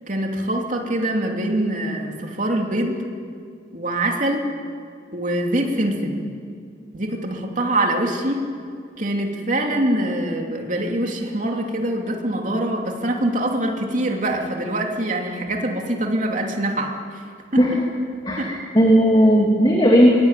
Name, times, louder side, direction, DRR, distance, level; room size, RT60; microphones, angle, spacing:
voice 1, 0.1-3.0 3.7-4.5 5.1-6.3 6.9-8.4 9.0-17.2 17.5-17.6 18.4-18.5, right 1 dB, 40° right, 1 dB, 3.1 m, -24 dB
voice 2, 18.2-20.1, equal, 25° left, -1 dB, 2.8 m, -15 dB
24.0 x 21.0 x 9.2 m, 2.3 s
head